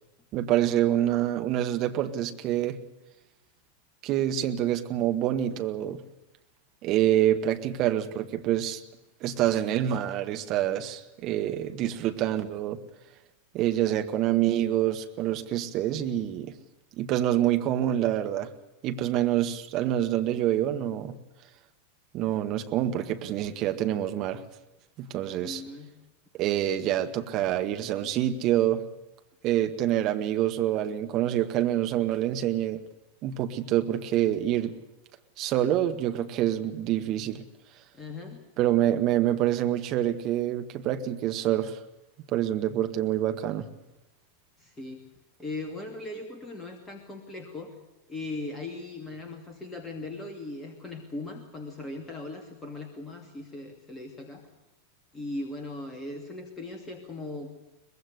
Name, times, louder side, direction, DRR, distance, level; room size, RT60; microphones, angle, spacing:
voice 1, 0.3-2.8 4.0-6.0 6.8-8.8 9.2-12.8 13.5-16.5 17.0-18.5 18.8-21.2 22.1-24.4 25.0-25.6 26.3-28.8 29.4-32.8 33.2-34.7 35.4-37.4 38.6-41.8 42.3-43.7, right 12 dB, 40° right, 7 dB, 1.8 m, -26 dB
voice 2, 25.4-25.9 37.9-38.4 44.6-45.0 45.4-47.7 48.1-54.4 55.1-57.5, left 2 dB, 15° left, 4 dB, 2.7 m, -38 dB
24.0 x 20.5 x 6.8 m, 0.97 s
figure-of-eight pair, 90°, 0 cm